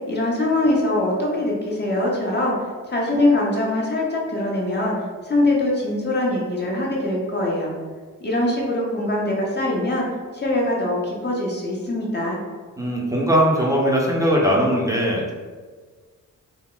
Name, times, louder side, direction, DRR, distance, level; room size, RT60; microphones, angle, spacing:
voice 1, 0.1-2.5 2.9-5.0 5.2-7.7 8.2-10.1 10.3-12.4, left 1 dB, 30° left, -3 dB, 0.8 m, -22 dB
voice 2, 12.8-15.3, equal, 10° right, -4 dB, 0.6 m, -20 dB
2.2 x 2.0 x 3.8 m, 1.5 s
cardioid pair, 55°, 32 cm